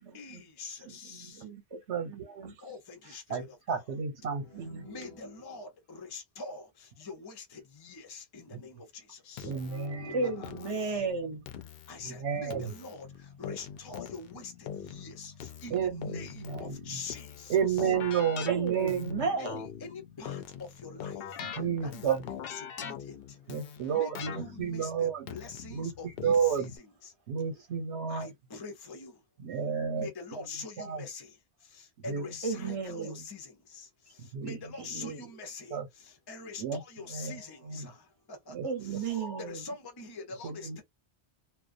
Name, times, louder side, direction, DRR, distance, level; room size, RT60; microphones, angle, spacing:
voice 1, 0.1-1.5 2.6-3.8 4.3-11.0 11.9-17.8 19.8-21.4 21.8-23.4 23.9-27.1 28.1-29.2 29.9-40.8, left 4 dB, 30° left, 0.5 m, -45 dB
voice 2, 0.8-2.2 2.5-2.6 3.0-3.2 4.5-5.2 10.1-11.5 18.5-19.7 32.4-33.3 34.8-35.3 38.6-39.7, right 4 dB, 25° right, 0.7 m, -35 dB
voice 3, 1.9-2.6 3.3-4.9 9.4-10.2 12.0-12.7 15.7-17.0 17.5-19.2 21.5-22.2 23.5-25.2 25.7-25.9 26.2-26.7 27.3-28.3 29.4-30.5 30.8-31.0 32.1-32.2 32.6-32.7 33.0-33.1 34.2-34.6 35.0-35.1 35.7-35.9 36.6-36.8 37.1-37.4 37.7-37.9 38.5-39.3 40.4-40.8, right 7 dB, 90° right, 1.1 m, -31 dB
Keyboard (musical), 9.4-26.8, left 8 dB, 65° left, 0.7 m, -43 dB
2.3 x 2.1 x 2.5 m
omnidirectional pair, 1.1 m